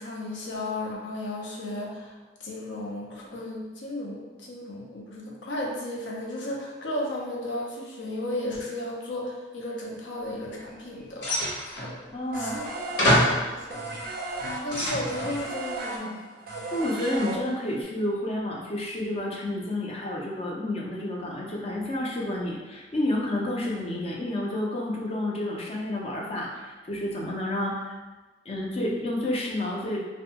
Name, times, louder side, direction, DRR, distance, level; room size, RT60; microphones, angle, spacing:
voice 1, 0.0-11.5 11.8-12.0 12.3-12.6 13.3-16.3, left 1 dB, 85° left, -1 dB, 0.5 m, -34 dB
sound 1, 11.2-11.9 12.6-12.7 13.0-13.5 14.2-15.3, equal, 55° left, 0.9 m, -25 dB
voice 2, 12.1-12.6 16.7-28.0 28.5-30.0, left 1 dB, 35° left, -2 dB, 0.4 m, -30 dB
sound 2, 12.3-17.8, right 2 dB, 50° right, 0.4 m, -35 dB
2.6 x 2.2 x 2.8 m, 1.2 s
head